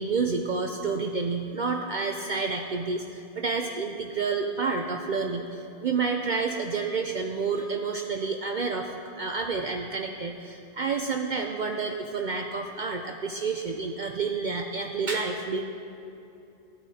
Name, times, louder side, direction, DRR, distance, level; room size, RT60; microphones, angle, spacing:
voice 1, 0.0-15.6, right 4 dB, 55° right, 3 dB, 0.5 m, -29 dB
14.5 x 8.6 x 2.7 m, 2.8 s
omnidirectional pair, 1.2 m